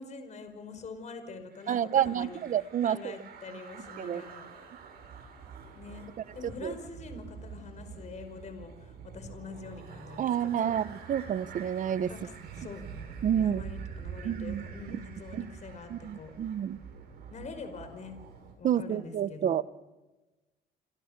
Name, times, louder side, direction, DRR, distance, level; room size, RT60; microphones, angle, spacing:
voice 1, 0.0-2.4 2.8-4.5 5.7-6.1 6.3-10.8 12.1-12.8 13.4-16.3 17.3-18.3 18.6-19.5, left 4 dB, 45° left, 8 dB, 5.3 m, -45 dB
sound 1, 1.5-18.5, right 6 dB, 70° right, 7.4 m, -46 dB
voice 2, 1.7-3.1 4.0-4.2 6.6-6.7 10.2-12.1 13.2-13.6 14.2-14.6 15.4-15.5 15.9-16.8 18.6-19.6, right 9 dB, 50° right, 16 dB, 1.0 m, -29 dB
28.5 x 26.5 x 6.8 m, 1.1 s
cardioid pair, 110°, 17 cm